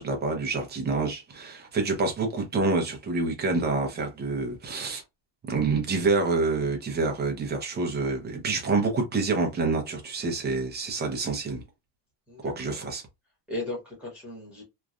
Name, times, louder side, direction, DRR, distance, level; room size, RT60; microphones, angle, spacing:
voice 1, 0.0-5.0 5.5-11.6 12.4-13.0, right 3 dB, 20° right, 0.6 m, -27 dB
voice 2, 12.3-12.8 13.5-14.6, left 2 dB, ahead, 1.1 m, -36 dB
3.1 x 2.3 x 2.4 m
cardioid pair, 175°, 49 cm